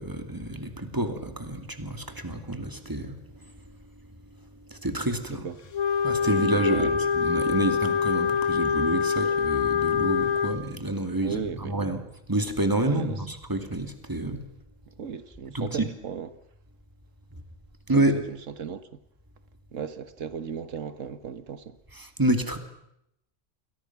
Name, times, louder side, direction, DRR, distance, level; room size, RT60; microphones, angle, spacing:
voice 1, 0.0-3.4 4.7-5.5 6.0-12.0 12.3-14.4 15.5-15.9 17.9-18.2 21.9-22.6, right 1 dB, 15° right, 2.4 m, -28 dB
Wind instrument woodwind instrument, 5.7-10.6, left 6 dB, 80° left, 1.9 m, -25 dB
voice 2, 6.2-6.9 11.2-11.8 12.8-13.2 15.0-16.3 17.9-19.0 19.7-21.7, right 6 dB, 85° right, 1.6 m, -35 dB
29.5 x 22.5 x 5.9 m
omnidirectional pair, 1.3 m